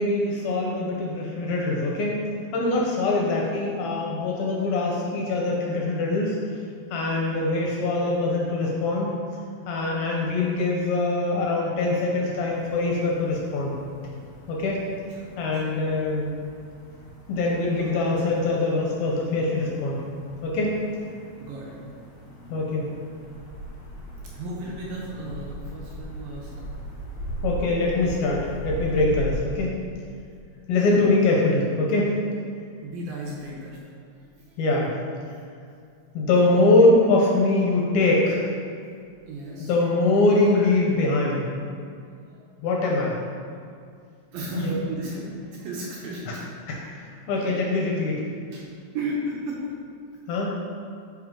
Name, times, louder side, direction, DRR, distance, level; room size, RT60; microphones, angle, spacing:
voice 1, 0.0-2.1 2.5-6.4 6.9-9.1 9.7-13.8 14.5-14.8 15.4-16.4 17.3-20.0 20.4-20.7 22.5-22.9 27.4-29.7 30.7-32.2 34.6-34.9 36.1-38.4 39.6-41.5 42.6-43.1 44.6-44.8 46.3-46.4 46.7-48.3 50.3-50.5, left 2 dB, 75° left, -2 dB, 2.4 m, -23 dB
sound 1, 12.5-29.4, equal, 60° left, 2.2 m, -39 dB
voice 2, 15.1-15.7 16.9-17.1 21.4-21.8 24.3-26.7 30.8-31.1 32.8-33.8 34.2-34.6 39.3-39.7 42.1-42.4 44.3-46.4 48.5-48.7 48.9-49.9, right 1 dB, 70° right, -4 dB, 2.4 m, -34 dB
9.3 x 5.4 x 3.7 m, 2.4 s
omnidirectional pair, 4.9 m